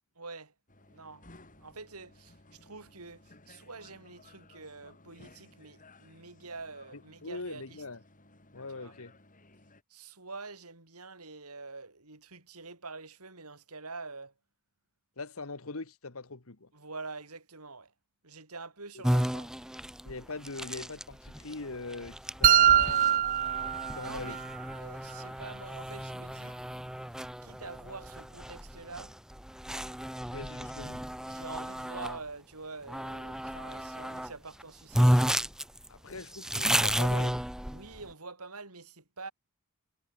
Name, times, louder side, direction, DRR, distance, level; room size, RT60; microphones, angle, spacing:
voice 1, 0.2-0.5 0.9-1.3 1.6-7.8 8.7-9.0 9.9-14.3 16.7-17.9 18.2-19.5 23.9-26.7 27.4-29.2 30.6-30.7 31.2-35.3 37.7-39.3, right 3 dB, 85° right, 6.3 m, -46 dB
sound 1, 0.7-9.8, left 2 dB, 35° left, 5.6 m, -58 dB
voice 2, 7.2-8.0 8.5-9.1 15.2-16.7 20.0-23.3 23.8-24.4 30.3-31.0 33.4-33.6 35.9-37.4, left 3 dB, 70° left, 1.6 m, -41 dB
sound 2, 19.0-32.2 32.9-34.3 34.6-34.7 34.9-38.0, equal, 5° right, 0.9 m, -32 dB
sound 3, 22.4-24.4, right 10 dB, 35° right, 0.4 m, -23 dB
head